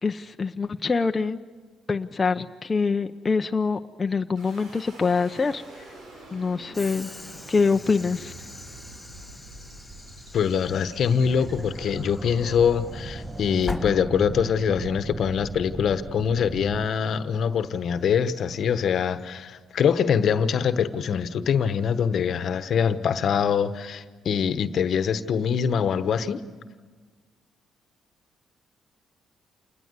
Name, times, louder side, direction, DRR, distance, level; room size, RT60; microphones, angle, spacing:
voice 1, 0.0-1.4 1.9-5.9 6.3-7.1 7.5-8.3, left 4 dB, 30° left, 5 dB, 0.7 m, -25 dB
sound 1, 4.4-17.3, right 1 dB, 75° right, 7.1 m, -48 dB
Train / Sliding door, 6.7-14.7, left 1 dB, 5° left, 3.8 m, -41 dB
voice 2, 10.3-26.4, left 7 dB, 65° left, 11 dB, 1.2 m, -24 dB
sound 2, 11.2-16.9, right 2 dB, 20° right, 1.3 m, -36 dB
28.0 x 20.5 x 8.3 m, 1.4 s
cardioid pair, 90°, 0 cm